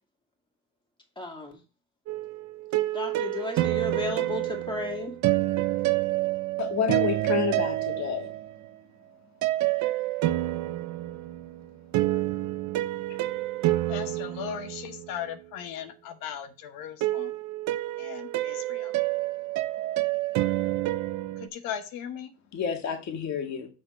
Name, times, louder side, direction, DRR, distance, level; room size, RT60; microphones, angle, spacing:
voice 1, 1.2-1.6 2.9-5.1, left 3 dB, 15° left, 2.2 m, -34 dB
sound 1, 2.1-8.7 9.4-15.3 17.0-21.5, right 16 dB, 60° right, 0.6 m, -28 dB
voice 2, 6.6-8.3 22.5-23.7, left 6 dB, 55° left, 1.9 m, -29 dB
voice 3, 13.9-17.3 18.0-18.9 21.4-22.3, left 9 dB, 80° left, 1.0 m, -37 dB
6.4 x 4.2 x 5.3 m
cardioid pair, 100°, 32 cm